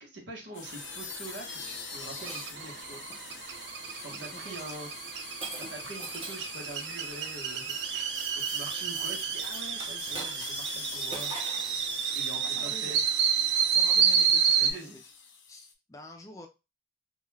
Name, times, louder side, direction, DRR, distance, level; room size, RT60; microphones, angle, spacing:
voice 1, 0.0-3.3 4.0-4.9 5.5-8.0 8.3-11.3 12.1-13.0 14.6-15.0, right 2 dB, 90° right, 0 dB, 0.9 m, -44 dB
sound 1, 0.5-15.7, left 6 dB, 90° left, 0.5 m, -44 dB
sound 2, 0.7-14.7, right 7 dB, 70° right, 0.3 m, -30 dB
Shatter, 1.8-3.2 3.9-4.2 5.4-6.6 9.7-10.8 11.1-11.7, right 2 dB, 30° right, 0.7 m, -42 dB
voice 2, 4.1-4.8 12.4-12.9 13.7-15.1 15.5-16.5, left 1 dB, 20° left, 3 dB, 0.4 m, -48 dB
2.3 x 2.3 x 3.1 m, 0.27 s
head